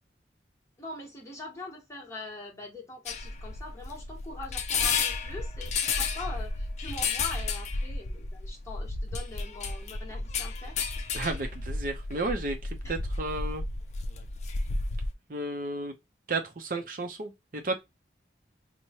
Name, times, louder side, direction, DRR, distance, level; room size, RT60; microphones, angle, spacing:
voice 1, 0.8-10.8 12.8-13.0, left 2 dB, 15° left, 1.2 m, -42 dB
sound 1, 3.1-15.1, left 4 dB, 40° left, 0.4 m, -32 dB
voice 2, 11.1-13.6 15.3-15.9 16.3-17.8, right 2 dB, 50° right, 0.6 m, -33 dB
4.6 x 2.2 x 2.8 m
head